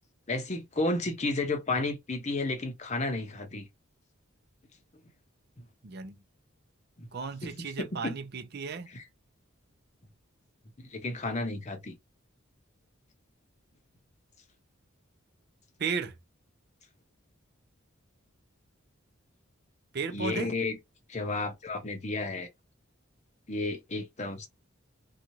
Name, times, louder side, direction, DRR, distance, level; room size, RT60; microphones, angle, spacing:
voice 1, 0.3-3.7 7.0-7.1 7.4-8.1 8.9-9.0 10.9-12.0 20.1-20.8 21.1-22.5 23.5-24.5, left 2 dB, 35° left, 0.7 m, -32 dB
voice 2, 5.8-6.2 7.1-8.9 15.8-16.1 19.9-20.5, right 5 dB, 50° right, 0.5 m, -34 dB
2.7 x 2.3 x 3.0 m
head